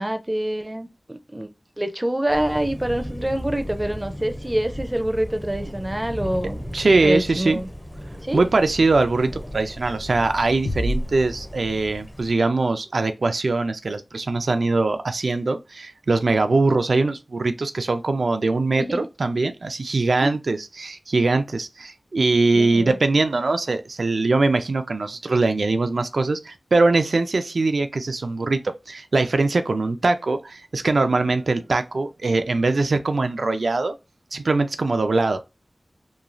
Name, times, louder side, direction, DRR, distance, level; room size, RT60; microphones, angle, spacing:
voice 1, 0.0-1.5 1.8-6.6 6.9-7.7 8.2-8.4 18.8-19.1 20.2-20.4 22.5-23.0, right 1 dB, 20° right, 0.4 m, -26 dB
Thunder, 2.3-12.3, equal, 25° left, 0.6 m, -36 dB
voice 2, 6.7-7.6 8.3-34.0 34.3-35.4, right 3 dB, 85° right, 0.3 m, -22 dB
sound 1, 10.6-12.4, left 1 dB, 90° left, 0.4 m, -29 dB
3.0 x 2.3 x 2.5 m
wide cardioid pair, 70°, 0 cm